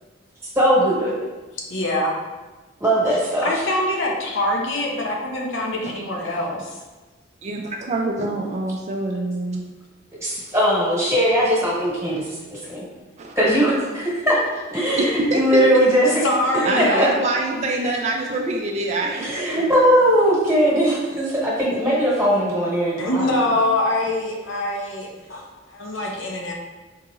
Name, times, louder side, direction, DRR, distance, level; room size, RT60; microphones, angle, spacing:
voice 1, 0.5-1.1 2.8-3.5 10.2-12.8 13.4-14.4 14.7-16.2 16.8-17.1 19.2-23.3, equal, 15° right, -7 dB, 1.2 m, -19 dB
voice 2, 1.7-2.1 3.4-6.8 12.8-12.9 16.2-17.0 23.0-26.5, left 1 dB, 75° left, 0 dB, 0.7 m, -24 dB
voice 3, 7.4-9.6 13.2-13.3 15.0-15.6 16.6-19.6, right 2 dB, 35° right, 1 dB, 0.3 m, -25 dB
4.5 x 2.9 x 2.4 m, 1.2 s
head